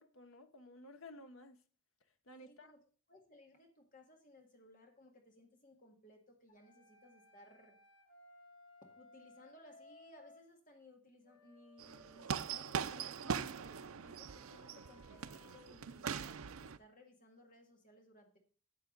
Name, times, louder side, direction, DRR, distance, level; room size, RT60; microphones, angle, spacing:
voice 1, 0.0-1.6 2.0-2.7, left 1 dB, 80° left, 1.0 m, -55 dB
voice 2, 2.4-2.8 3.1-7.8 9.0-16.2 16.6-18.4, left 1 dB, 40° left, 2.0 m, -62 dB
sound 1, 6.5-10.5 11.2-15.8, left 2 dB, 60° left, 2.2 m, -63 dB
sound 2, 11.8-16.8, right 6 dB, 85° right, 0.6 m, -41 dB
11.0 x 7.3 x 4.0 m
head